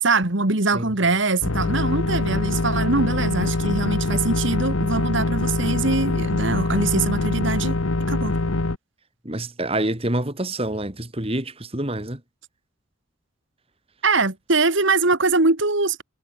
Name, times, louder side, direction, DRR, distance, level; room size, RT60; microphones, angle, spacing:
voice 1, 0.0-7.8 8.1-8.3 14.0-16.0, right 3 dB, 60° right, 2.0 m, -22 dB
sound 1, 1.4-8.8, left 2 dB, 75° left, 1.4 m, -24 dB
voice 2, 9.2-12.2, right 1 dB, 25° right, 2.6 m, -27 dB
head